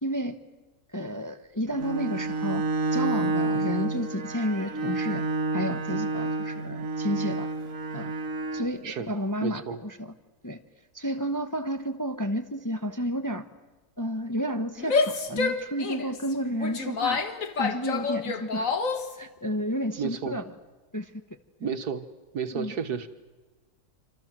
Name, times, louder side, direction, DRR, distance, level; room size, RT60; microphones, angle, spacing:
voice 1, 0.0-0.4 0.9-2.7 2.9-5.2 5.5-7.5 7.9-8.1 8.5-10.1 10.4-10.6 10.9-13.4 14.0-17.2 17.6-18.7 19.2-20.5 20.9-21.1 22.5-22.7, equal, 15° left, 7 dB, 1.0 m, -31 dB
Bowed string instrument, 1.7-8.8, right 3 dB, 55° right, 1.6 m, -29 dB
voice 2, 9.4-9.8 20.0-20.4 21.6-22.1 22.3-23.1, right 6 dB, 85° right, 9 dB, 2.0 m, -32 dB
Female speech woman speaking / Yell, 14.8-19.1, left 4 dB, 60° left, 1.9 m, -28 dB
26.5 x 26.5 x 7.6 m, 1.2 s
omnidirectional pair, 1.6 m